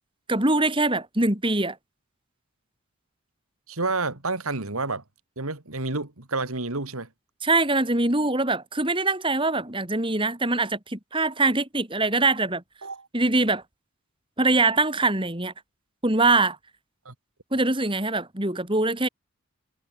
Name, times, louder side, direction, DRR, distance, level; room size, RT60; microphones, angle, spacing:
voice 1, 0.3-1.7 7.4-12.6 13.1-13.6 14.4-15.5 16.0-16.6 17.5-19.1, right 2 dB, 25° right, 3.3 m, -23 dB
voice 2, 3.7-5.0 5.4-7.1 12.8-13.1 17.0-17.1, right 3 dB, 80° right, 2.7 m, -29 dB
head